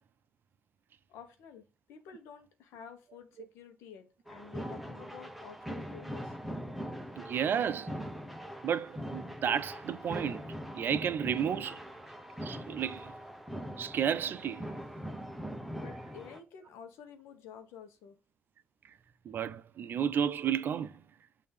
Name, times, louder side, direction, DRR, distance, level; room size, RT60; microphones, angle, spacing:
voice 1, 1.1-1.6 1.9-6.4 15.7-18.1, left 7 dB, 85° left, 1.0 m, -50 dB
sound 1, 4.3-16.4, equal, ahead, 0.8 m, -42 dB
voice 2, 7.2-8.0 8.6-10.4 10.7-11.8 12.4-13.1 13.8-14.7 19.3-20.9, right 8 dB, 55° right, 0.5 m, -32 dB
6.6 x 2.8 x 5.1 m
supercardioid pair, 75°, 4 cm